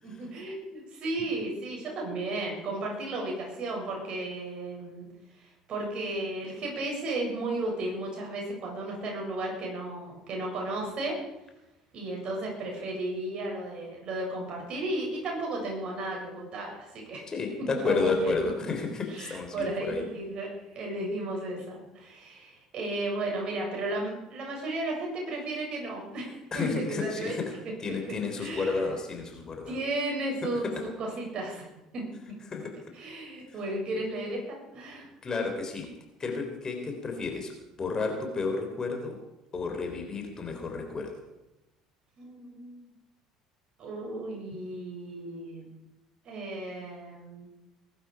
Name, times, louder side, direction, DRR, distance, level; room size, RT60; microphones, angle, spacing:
voice 1, 0.0-5.1 5.4-11.2 11.9-17.3 17.7-18.3 19.1-27.4 28.4-28.8 29.7-30.7 31.0-31.7 31.9-32.1 33.0-35.1 42.2-42.9 43.8-45.7 46.2-47.5, right 2 dB, 45° right, -1 dB, 7.3 m, -34 dB
voice 2, 17.3-20.1 26.5-27.5 27.8-29.8 30.6-30.8 32.5-32.8 35.2-35.9 36.2-37.5 37.8-39.2 39.5-41.2, left 4 dB, 30° left, 4 dB, 3.7 m, -31 dB
20.5 x 12.0 x 5.0 m, 0.97 s
figure-of-eight pair, 65°, 2 cm